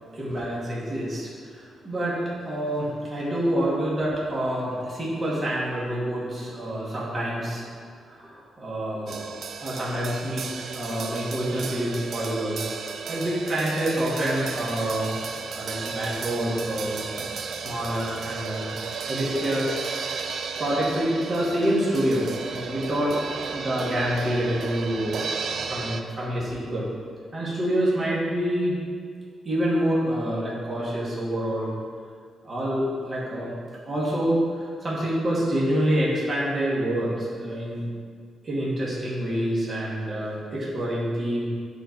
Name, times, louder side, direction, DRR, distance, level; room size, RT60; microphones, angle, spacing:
voice 1, 0.1-2.2 2.4-7.6 8.1-9.2 9.6-10.4 10.7-12.6 13.1-15.1 15.5-17.1 17.6-18.7 19.1-19.7 20.6-25.2 25.5-26.9 27.3-28.8 29.4-31.7 32.4-33.5 33.9-37.8 38.4-41.5, right 1 dB, 35° right, -7 dB, 2.3 m, -27 dB
sound 1, 9.1-26.0, right 5 dB, 60° right, 0.5 m, -34 dB
8.9 x 4.5 x 6.1 m, 2.1 s
cardioid pair, 105°, 0 cm